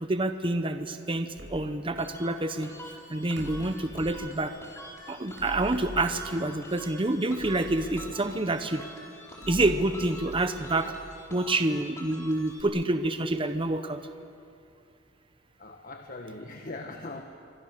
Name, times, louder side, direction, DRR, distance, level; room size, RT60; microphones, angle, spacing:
voice 1, 0.0-4.5 5.1-8.9 9.5-10.9 11.3-14.0, right 2 dB, 30° right, 9 dB, 1.0 m, -28 dB
sound 1, 1.4-1.8 3.4-4.3 5.4-6.6 7.4-8.7 9.4-11.3, equal, 75° right, 7.3 m, -43 dB
sound 2, 2.0-12.6, left 1 dB, 15° left, 4.4 m, -46 dB
voice 2, 15.6-17.2, left 2 dB, 45° left, 3 dB, 1.4 m, -40 dB
28.0 x 25.0 x 6.8 m, 2.5 s
head